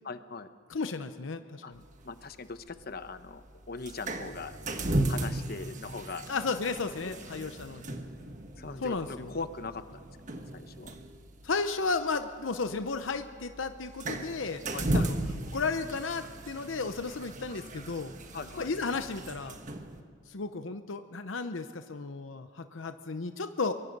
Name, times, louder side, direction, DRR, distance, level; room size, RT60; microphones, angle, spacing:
voice 1, 0.0-0.5 1.6-1.7 2.0-4.6 5.1-6.3 7.0-7.5 8.6-9.8 10.5-10.9 14.7-15.1 18.3-18.7, left 4 dB, 50° left, 11 dB, 1.0 m, -40 dB
voice 2, 0.7-1.8 6.3-8.0 8.8-9.3 11.4-14.6 14.9-15.2 15.5-18.1 18.6-19.6 20.3-23.7, left 4 dB, 80° left, 9 dB, 0.8 m, -33 dB
sound 1, 1.7-20.0, right 1 dB, 40° right, 1.5 m, -37 dB
23.5 x 21.5 x 5.4 m, 2.2 s
head